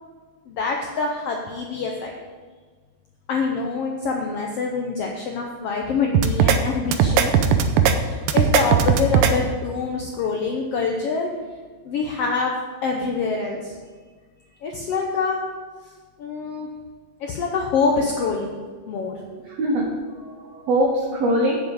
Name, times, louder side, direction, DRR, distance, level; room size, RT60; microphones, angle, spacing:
voice 1, 0.5-2.1 3.3-7.3 7.9-11.3 11.8-13.7 14.6-15.4 16.2-16.7 17.2-18.6 18.9-19.1, left 4 dB, 85° left, 1 dB, 1.3 m, -25 dB
sound 1, 6.1-6.6 6.9-7.9 8.3-9.3, right 8 dB, 85° right, 2.4 m, -17 dB
voice 2, 19.2-21.6, right 1 dB, 65° right, -1 dB, 1.9 m, -23 dB
7.4 x 7.1 x 8.0 m, 1.5 s
omnidirectional pair, 3.9 m